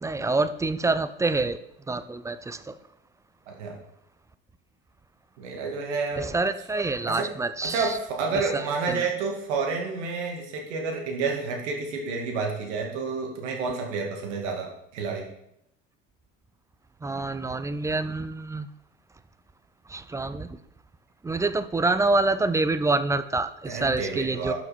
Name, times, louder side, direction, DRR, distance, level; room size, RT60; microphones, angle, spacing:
voice 1, 0.0-1.6 1.9-2.7 6.2-8.0 8.5-9.1 17.0-18.7 19.9-20.6 21.2-24.5, right 3 dB, 10° right, 12 dB, 0.4 m, -26 dB
voice 2, 3.5-3.8 5.4-6.3 7.1-7.3 7.6-15.3 23.7-24.5, right 4 dB, 65° right, 0 dB, 2.4 m, -30 dB
11.5 x 5.8 x 4.3 m, 0.77 s
figure-of-eight pair, 70°, 38 cm